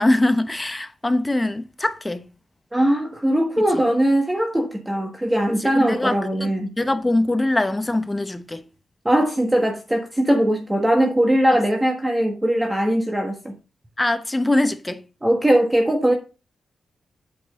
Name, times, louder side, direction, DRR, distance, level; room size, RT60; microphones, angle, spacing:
voice 1, 0.0-2.3 3.7-3.8 5.5-6.5 6.8-8.6 14.0-15.0, left 1 dB, 15° left, 1.0 m, -22 dB
voice 2, 2.7-6.7 9.0-13.5 15.2-16.1, right 1 dB, 15° right, 1.5 m, -20 dB
8.6 x 6.1 x 3.7 m
cardioid pair, 85°, 0 cm